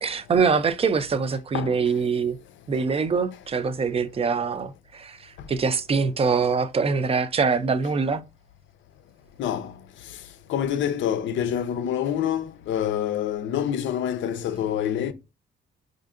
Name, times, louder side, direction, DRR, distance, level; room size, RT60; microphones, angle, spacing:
voice 1, 0.0-2.4 2.7-8.2, right 5 dB, 30° right, 0.4 m, -24 dB
voice 2, 9.4-9.7 10.5-15.1, left 9 dB, 70° left, 0.5 m, -26 dB
4.3 x 2.6 x 2.4 m
cardioid pair, 90°, 20 cm